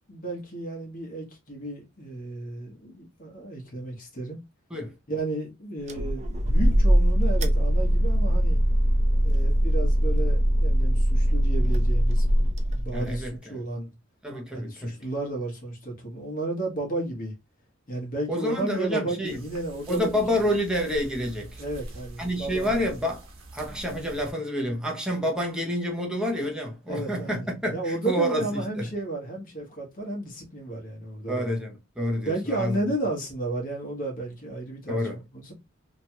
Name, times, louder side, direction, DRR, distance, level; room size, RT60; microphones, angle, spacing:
voice 1, 0.1-4.4 5.1-8.6 9.2-13.9 14.5-17.3 17.9-20.2 21.6-22.8 26.9-31.5 32.2-35.5, right 2 dB, 45° left, 1.2 m, -33 dB
sound 1, 5.9-13.3, equal, 35° right, 0.4 m, -21 dB
voice 2, 12.9-13.6 14.2-14.9 18.3-19.4 19.9-21.6 22.2-23.3 23.5-28.9 31.3-32.8 34.9-35.2, equal, 5° right, 0.7 m, -28 dB
sound 2, 19.2-24.3, right 1 dB, 75° right, 1.0 m, -44 dB
2.9 x 2.4 x 2.8 m
head